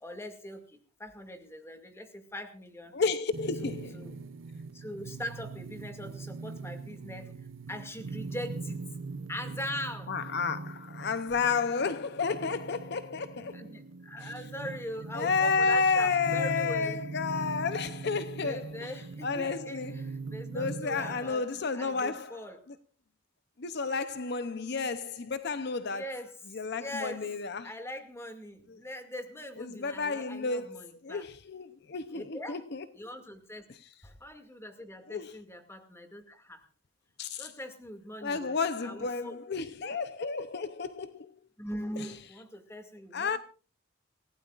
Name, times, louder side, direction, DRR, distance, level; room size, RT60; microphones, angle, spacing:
voice 1, 0.0-2.9 3.6-4.2 4.7-7.4 7.7-8.8 9.3-10.2 13.5-17.0 18.4-21.5 21.7-22.6 25.9-27.3 27.6-31.3 32.1-32.6 32.9-33.6 34.0-36.7 37.4-38.6 38.8-39.4 41.6-43.4, left 1 dB, 15° left, 2.2 m, -41 dB
voice 2, 2.9-4.1 10.1-13.7 14.2-14.3 15.1-18.9 19.2-19.9 20.5-22.4 23.6-26.1 26.5-27.7 28.7-28.8 29.6-32.9 33.7-33.8 35.1-35.4 37.2-37.5 38.2-41.3 42.0-42.1 43.1-43.4, left 5 dB, 60° left, 0.7 m, -31 dB
sound 1, 3.3-21.3, right 4 dB, 85° right, 0.6 m, -41 dB
28.0 x 16.0 x 2.5 m
head